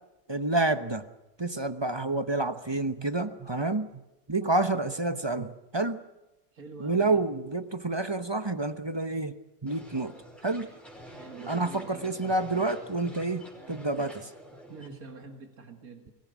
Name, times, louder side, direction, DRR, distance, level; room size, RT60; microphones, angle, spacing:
voice 1, 0.3-1.0 1.4-4.0 4.3-6.0 6.8-9.4 9.6-10.1 10.4-10.7 11.5-14.3, right 2 dB, 20° right, 10 dB, 0.9 m, -29 dB
voice 2, 6.5-7.2 11.1-12.3 14.7-16.1, right 3 dB, 85° right, 5 dB, 2.6 m, -46 dB
sound 1, 9.7-14.9, right 1 dB, ahead, 5.3 m, -47 dB
23.5 x 18.0 x 9.5 m, 0.95 s
omnidirectional pair, 1.5 m